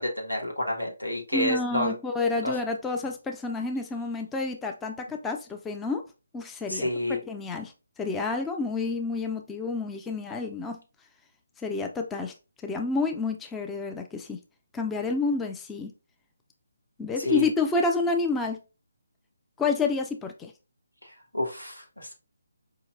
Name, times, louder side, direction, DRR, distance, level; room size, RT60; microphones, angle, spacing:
voice 1, 0.0-1.9 2.4-2.5 6.7-7.2 17.2-17.5 21.0-22.1, left 1 dB, 90° left, 0 dB, 1.4 m, -29 dB
voice 2, 1.3-6.0 6.3-10.8 11.6-12.3 12.6-14.4 14.7-15.9 17.0-18.6 19.6-20.5, left 3 dB, 10° left, 4 dB, 0.3 m, -29 dB
4.9 x 2.7 x 2.5 m, 0.31 s
figure-of-eight pair, 145°, 0 cm